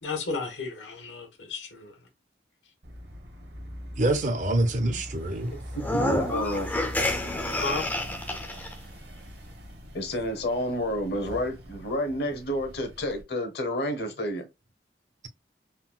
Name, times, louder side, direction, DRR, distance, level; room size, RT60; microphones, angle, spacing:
voice 1, 0.0-2.0 7.5-7.9, left 3 dB, 80° left, 1.1 m, -33 dB
sound 1, 2.8-13.2, equal, 65° right, 0.9 m, -42 dB
voice 2, 4.0-5.6, right 1 dB, 45° right, 0.5 m, -26 dB
voice 3, 5.7-6.7 9.9-14.5, equal, 60° left, 0.8 m, -30 dB
sound 2, 5.8-8.7, left 2 dB, 10° left, 0.4 m, -29 dB
3.8 x 2.2 x 2.2 m
head